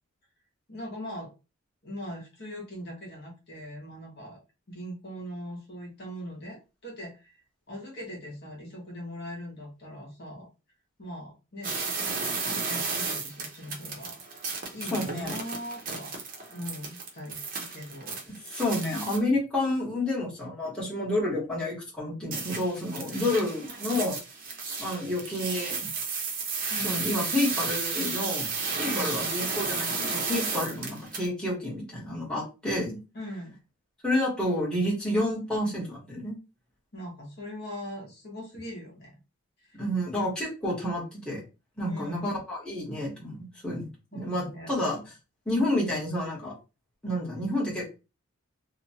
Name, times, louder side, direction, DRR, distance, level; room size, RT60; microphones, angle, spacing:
voice 1, 0.7-1.3 1.8-4.4 4.7-7.3 7.7-10.5 11.0-11.9 12.4-14.2 14.7-16.1 16.5-18.2 23.1-23.3 26.7-27.1 28.8-29.2 33.1-33.6 36.9-39.2 39.7-39.8 41.8-42.4 44.1-44.7, equal, 50° left, -2 dB, 1.0 m, -40 dB
sound 1, 11.6-19.2 22.3-31.3, right 4 dB, 40° right, 0.6 m, -33 dB
voice 2, 14.9-15.3 18.5-24.2 24.8-25.9 26.8-28.5 28.8-33.0 34.0-36.3 39.7-41.4 41.8-45.0 45.5-46.5 47.0-47.9, left 1 dB, 5° left, -7 dB, 1.1 m, -29 dB
2.9 x 2.1 x 2.7 m, 0.30 s
head